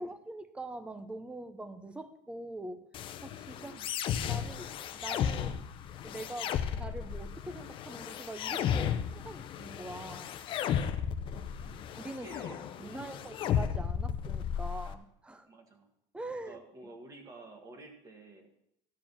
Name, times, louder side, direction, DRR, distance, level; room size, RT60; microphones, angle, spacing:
voice 1, 0.0-2.8 3.2-3.8 4.2-5.6 6.0-10.3 12.0-12.4 12.8-15.5 16.1-16.6, right 1 dB, 10° right, 11 dB, 0.7 m, -43 dB
sound 1, 2.9-14.9, left 8 dB, 40° left, 0.7 m, -34 dB
voice 2, 3.6-3.9 11.5-13.4 15.4-15.9 16.4-18.5, right 2 dB, 25° right, 4 dB, 1.8 m, -51 dB
13.0 x 5.0 x 7.2 m, 0.78 s
cardioid pair, 155°, 13 cm